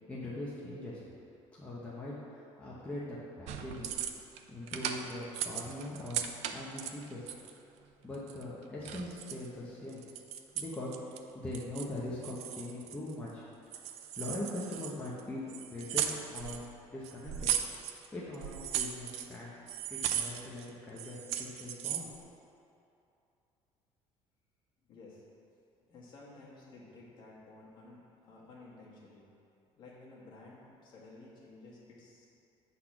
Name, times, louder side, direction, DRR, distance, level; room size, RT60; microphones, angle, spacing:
voice 1, 0.1-1.0 1.6-4.0 4.5-6.2 6.5-7.3 8.0-10.0 10.5-13.4 13.9-16.6 16.9-17.5 17.9-19.5 19.9-22.3, left 1 dB, 10° left, -8 dB, 0.8 m, -41 dB
sound 1, 3.5-4.4 4.7-7.6 8.1-9.5 9.9-11.2 11.5-12.0 12.2-13.3 13.7-15.2 15.5-16.6 17.0-18.1 18.3-19.4 19.7-20.7 21.0-22.1, right 10 dB, 75° right, 0.5 m, -37 dB
voice 2, 24.8-25.2 25.9-29.3 29.8-32.3, left 2 dB, 45° left, -6 dB, 1.7 m, -53 dB
8.2 x 4.1 x 5.9 m, 2.7 s
cardioid pair, 180°, 11 cm